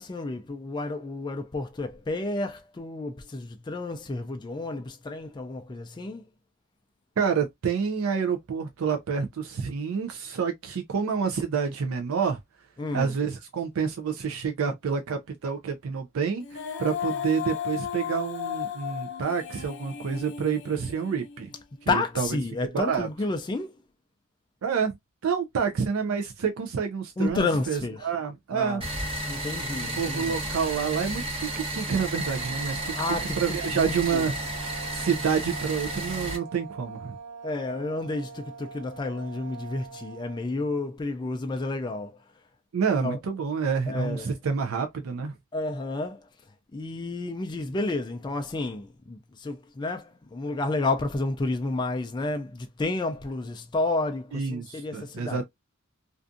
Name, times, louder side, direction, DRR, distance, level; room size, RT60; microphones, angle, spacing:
voice 1, 0.0-6.3 12.8-13.1 21.9-23.8 27.2-28.1 28.5-28.9 29.3-30.5 33.0-34.3 37.4-42.2 43.0-43.2 43.9-44.3 45.5-46.3 46.7-55.4, left 2 dB, 20° left, 0.3 m, -31 dB
voice 2, 7.2-12.4 12.9-21.5 21.9-22.3 22.7-23.1 24.6-25.0 25.2-28.8 29.9-32.9 33.4-37.2 42.7-45.4 54.3-55.4, right 6 dB, 80° right, 0.4 m, -28 dB
Female singing, 16.4-21.6, left 8 dB, 60° left, 0.6 m, -35 dB
sound 1, 28.8-36.4, right 1 dB, 25° right, 0.9 m, -32 dB
sound 2, 31.8-40.5, right 5 dB, 65° right, 0.8 m, -44 dB
2.5 x 2.3 x 2.4 m
head